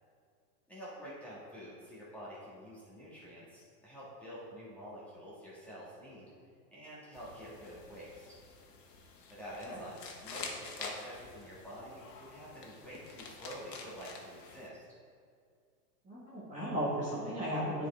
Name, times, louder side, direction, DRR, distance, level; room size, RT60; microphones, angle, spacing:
voice 1, 0.7-6.3 6.7-8.3 9.3-14.8, equal, 5° left, -10 dB, 1.6 m, -48 dB
sound 1, 7.1-14.7, left 4 dB, 80° left, 1.3 m, -48 dB
voice 2, 16.0-17.9, equal, 15° right, -9 dB, 1.4 m, -35 dB
9.7 x 4.7 x 3.4 m, 2.2 s
hypercardioid pair, 145°, 48 cm